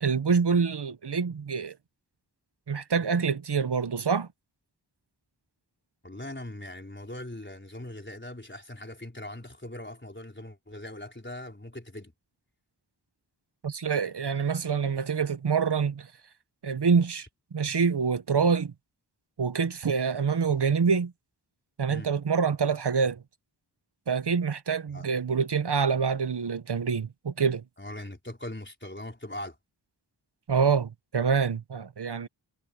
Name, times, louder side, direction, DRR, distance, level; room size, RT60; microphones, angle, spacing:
voice 1, 0.0-1.7 2.7-4.3 13.6-16.1 16.6-18.7 19.4-21.1 21.8-23.2 24.1-27.6 30.5-32.3, right 5 dB, 65° right, 1.1 m, -26 dB
voice 2, 6.0-12.1 21.9-22.1 24.9-25.0 27.8-29.6, left 1 dB, 25° left, 4.5 m, -40 dB
wide cardioid pair, 65°, 43 cm